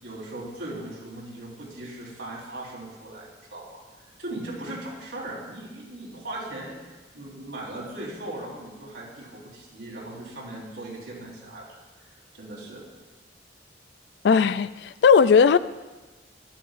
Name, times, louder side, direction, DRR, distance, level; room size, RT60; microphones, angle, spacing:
voice 1, 0.0-3.8 4.2-12.8, right 1 dB, 90° right, -5 dB, 3.9 m, -38 dB
voice 2, 14.2-15.6, left 6 dB, 65° left, 15 dB, 0.3 m, -17 dB
12.5 x 12.0 x 2.5 m, 1.2 s
head